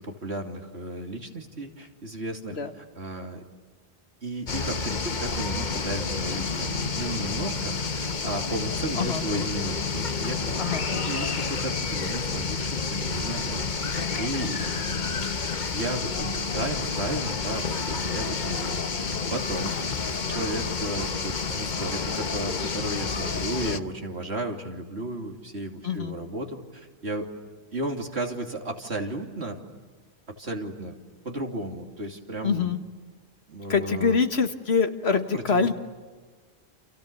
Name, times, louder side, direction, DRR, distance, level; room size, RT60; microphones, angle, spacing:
voice 1, 0.0-3.4 4.2-13.6 13.9-15.0 15.5-19.8 20.3-27.3 27.7-29.6 30.3-31.0 31.2-32.7 33.5-34.2 35.3-35.7, right 1 dB, 85° right, 3 dB, 3.2 m, -34 dB
sound 1, 4.5-23.8, left 4 dB, 50° left, 1.2 m, -29 dB
voice 2, 25.8-26.2 32.4-32.8 33.7-35.7, left 5 dB, 80° left, 7 dB, 2.0 m, -24 dB
29.5 x 29.0 x 6.9 m, 1.4 s
omnidirectional pair, 1.1 m